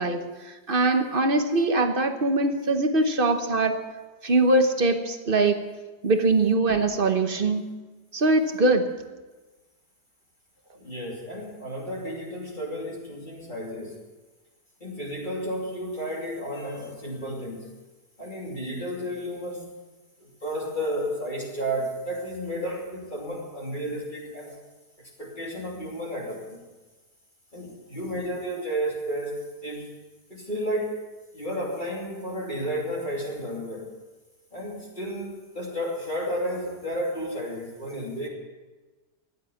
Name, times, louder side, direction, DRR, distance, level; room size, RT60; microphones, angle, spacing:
voice 1, 0.0-3.8 4.2-5.7 6.0-7.7 8.1-8.9, right 2 dB, 40° right, 7 dB, 1.1 m, -22 dB
voice 2, 10.8-14.0 14.8-17.7 18.2-19.7 20.2-24.6 25.0-26.6 27.5-29.9 30.3-31.0 31.3-33.9 34.5-38.3, equal, 30° left, -3 dB, 3.0 m, -32 dB
15.5 x 11.0 x 7.2 m, 1.2 s
omnidirectional pair, 1.7 m